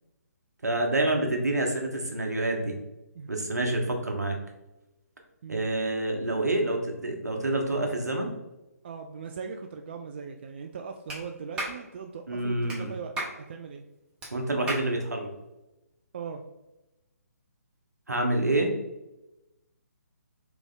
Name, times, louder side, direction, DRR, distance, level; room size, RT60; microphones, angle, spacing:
voice 1, 0.6-2.8 3.3-4.4 5.5-8.3 12.3-12.9 14.3-15.3 18.1-18.7, right 2 dB, 80° right, 2 dB, 1.0 m, -27 dB
voice 2, 8.8-13.1 13.5-13.8 16.1-16.4, right 6 dB, 40° right, 4 dB, 0.3 m, -39 dB
Clapping, 11.1-11.2 11.6-11.8 12.7-12.8 13.2-13.4 14.2-14.3 14.7-14.9, right 2 dB, 10° right, 0.9 m, -33 dB
3.5 x 3.4 x 3.6 m, 0.97 s
figure-of-eight pair, 140°, 9 cm